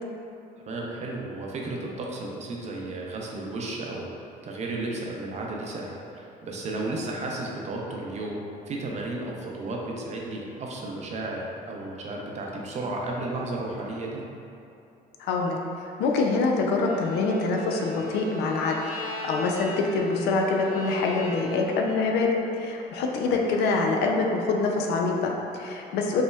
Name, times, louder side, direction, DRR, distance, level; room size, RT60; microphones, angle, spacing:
voice 1, 0.7-4.1 4.4-14.2 23.2-23.3, right 2 dB, 40° right, -2 dB, 0.6 m, -33 dB
voice 2, 15.2-15.6 16.0-18.8 19.3-26.2, left 3 dB, 85° left, 1 dB, 0.5 m, -25 dB
Bowed string instrument, 16.8-22.0, left 1 dB, 85° right, 1.1 m, -39 dB
5.3 x 2.1 x 2.3 m, 2.8 s
cardioid pair, 110°, 17 cm